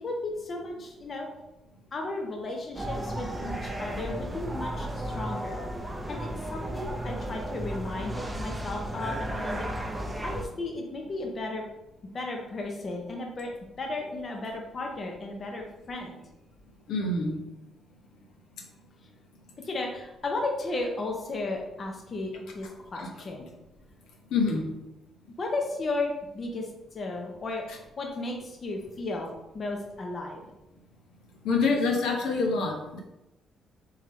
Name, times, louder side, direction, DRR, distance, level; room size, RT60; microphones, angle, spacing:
voice 1, 0.0-1.3 1.9-5.6 6.1-9.7 10.2-11.6 12.1-13.5 13.8-16.2 19.6-23.5 25.4-26.7 26.9-27.7 28.0-30.5, left 2 dB, 40° left, 1 dB, 0.7 m, -34 dB
sound 1, 2.8-10.5, right 1 dB, 10° right, 0.5 m, -34 dB
voice 2, 16.9-17.4 23.0-23.1 24.3-24.7 31.4-33.0, left 3 dB, 85° left, 1 dB, 0.9 m, -26 dB
3.8 x 3.3 x 4.3 m, 0.94 s
cardioid pair, 120°, 0 cm